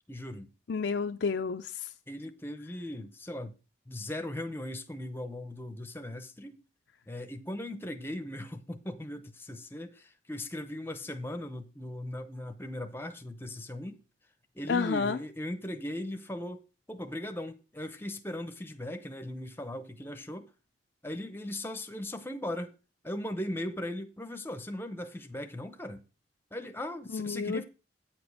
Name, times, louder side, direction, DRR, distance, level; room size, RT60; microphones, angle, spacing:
voice 1, 0.1-0.5 2.1-3.5 3.9-6.6 7.1-14.0 14.5-20.5 21.0-22.7 23.0-26.0 26.5-27.6, left 1 dB, 10° left, 0.7 m, -38 dB
voice 2, 0.7-1.9 14.7-15.2 27.1-27.6, left 5 dB, 75° left, 0.5 m, -30 dB
8.9 x 5.2 x 6.2 m
head